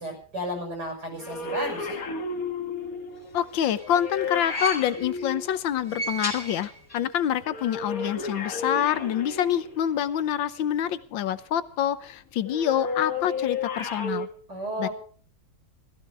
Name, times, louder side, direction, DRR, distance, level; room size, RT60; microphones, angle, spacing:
voice 1, 0.0-2.0 14.5-14.9, equal, 60° right, 2 dB, 7.3 m, -33 dB
sound 1, 1.2-6.2 7.4-10.0 12.4-14.3, left 4 dB, 45° left, 2.1 m, -33 dB
voice 2, 3.3-14.3 14.8-14.9, left 10 dB, 80° left, 14 dB, 1.6 m, -26 dB
sound 2, 3.3-5.3 5.7-7.2 7.4-7.5 8.6-8.7, right 1 dB, 20° left, 3.1 m, -36 dB
16.0 x 15.0 x 4.8 m, 0.43 s
omnidirectional pair, 2.1 m